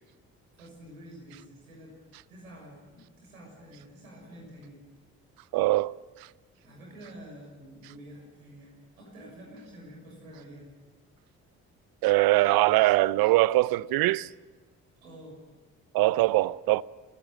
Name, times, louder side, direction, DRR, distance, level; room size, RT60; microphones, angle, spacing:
voice 1, 0.5-1.9 2.3-4.8 6.6-10.7 15.0-15.4, equal, 85° right, 6.6 m, -48 dB
voice 2, 5.5-5.9 12.0-14.3 15.9-16.8, right 18 dB, 60° right, 0.7 m, -22 dB
28.0 x 16.5 x 8.8 m
figure-of-eight pair, 40°, 41 cm